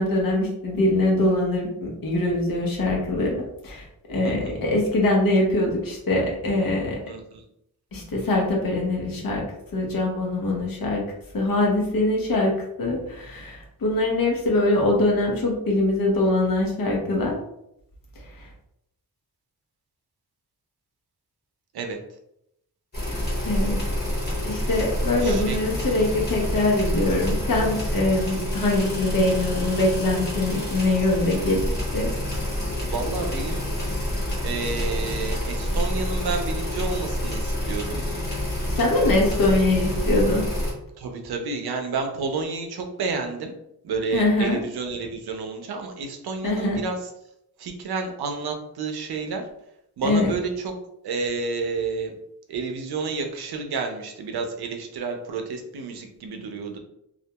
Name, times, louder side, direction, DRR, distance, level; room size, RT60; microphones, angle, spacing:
voice 1, 0.0-7.0 7.9-9.4 9.7-11.0 11.3-17.4 18.4-18.5 23.4-23.8 24.4-31.6 31.9-32.1 38.8-40.4 44.1-44.6 46.4-46.8 50.0-50.3, left 2 dB, 65° left, -1 dB, 0.8 m, -23 dB
voice 2, 4.2-4.6 7.1-7.4 21.7-22.0 25.2-25.6 32.8-33.7 34.4-38.0 41.0-43.5 43.8-47.1 47.6-49.5 50.0-50.7 51.0-52.1 52.5-56.8, right 4 dB, 85° right, 4 dB, 0.5 m, -30 dB
sound 1, 22.9-40.7, left 1 dB, 25° left, 0.9 m, -27 dB
2.4 x 2.2 x 2.8 m, 0.78 s
wide cardioid pair, 175°, 37 cm